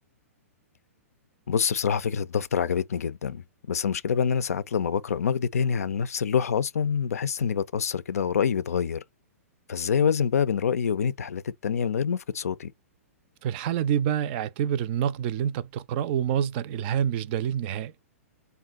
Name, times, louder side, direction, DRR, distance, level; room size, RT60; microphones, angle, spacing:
voice 1, 1.5-9.0 9.7-12.7, left 7 dB, 75° left, 0.4 m, -26 dB
voice 2, 13.4-18.0, right 9 dB, 45° right, 0.4 m, -27 dB
3.7 x 2.3 x 3.5 m
hypercardioid pair, 115°, 8 cm